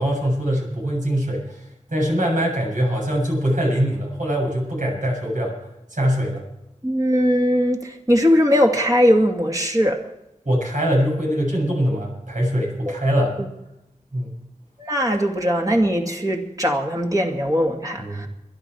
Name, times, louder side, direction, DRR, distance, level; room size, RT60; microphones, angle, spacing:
voice 1, 0.0-1.6 1.9-5.6 5.9-6.4 10.4-13.4 14.1-14.3 18.0-18.3, equal, 75° right, -2 dB, 7.5 m, -22 dB
voice 2, 6.8-10.0 12.9-13.0 14.8-18.3, equal, 25° right, 0 dB, 2.4 m, -20 dB
22.5 x 11.5 x 4.6 m, 0.87 s
wide cardioid pair, 65°, 13 cm